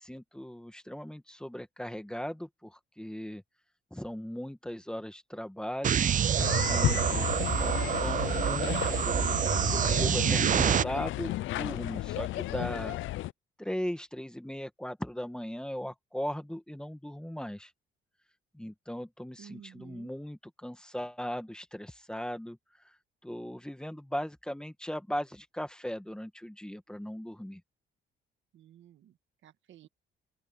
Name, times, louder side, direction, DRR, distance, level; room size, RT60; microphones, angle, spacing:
voice 1, 0.0-3.4 3.9-6.0 6.6-13.0 13.6-17.7 18.5-22.6 22.8-23.0 23.2-27.6, equal, 5° left, 1.8 m, -38 dB
sound 1, 5.8-10.8, right 9 dB, 40° right, 0.5 m, -27 dB
sound 2, 6.4-13.3, left 16 dB, 75° left, 0.5 m, -33 dB
voice 2, 19.4-20.1 28.5-29.2 29.4-29.9, right 10 dB, 75° right, 1.7 m, -53 dB
open air
cardioid pair, 90°, 20 cm